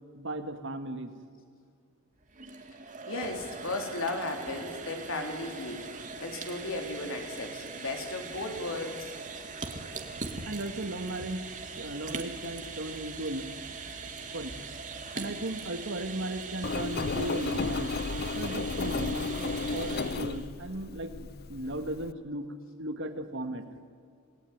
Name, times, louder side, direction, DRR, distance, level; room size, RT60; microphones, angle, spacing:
voice 1, 0.1-1.1 10.5-13.5 14.3-14.6 15.1-22.5 22.8-23.7, right 1 dB, 60° right, 8 dB, 1.9 m, -36 dB
sound 1, 2.2-20.5, right 4 dB, 40° right, 2.2 m, -41 dB
voice 2, 3.1-9.1, left 2 dB, 70° left, 3 dB, 3.9 m, -35 dB
Engine, 16.6-22.1, left 4 dB, 50° left, 0.6 m, -33 dB
27.5 x 18.5 x 9.5 m, 2.3 s
head